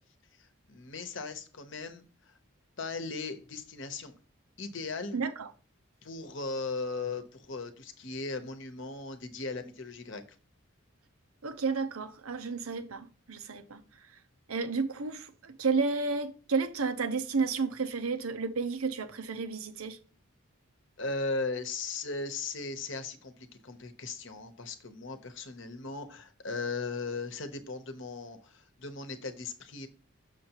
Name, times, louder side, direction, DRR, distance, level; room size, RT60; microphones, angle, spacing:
voice 1, 0.4-2.4 2.8-4.1 4.6-5.2 6.0-10.2 21.0-29.9, left 3 dB, 60° left, 0.9 m, -37 dB
voice 2, 5.1-5.5 11.4-14.1 14.5-20.0, right 4 dB, 85° right, 0.8 m, -32 dB
6.6 x 6.4 x 2.9 m
head